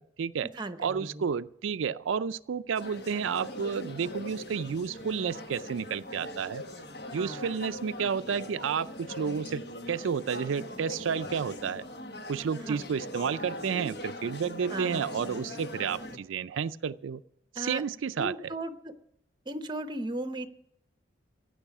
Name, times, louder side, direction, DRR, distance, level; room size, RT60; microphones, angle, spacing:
voice 1, 0.0-0.5 0.8-6.6 7.1-11.8 12.3-17.2 17.5-18.5, right 6 dB, 90° right, 12 dB, 0.4 m, -31 dB
voice 2, 0.6-1.2 7.1-7.6 12.7-12.8 14.7-15.0 16.1-16.2 17.6-17.8 18.2-18.9 19.5-20.5, right 1 dB, 25° right, 10 dB, 0.8 m, -36 dB
sound 1, 2.7-16.2, left 1 dB, 55° left, 1.4 m, -41 dB
15.5 x 9.2 x 5.9 m, 0.79 s
head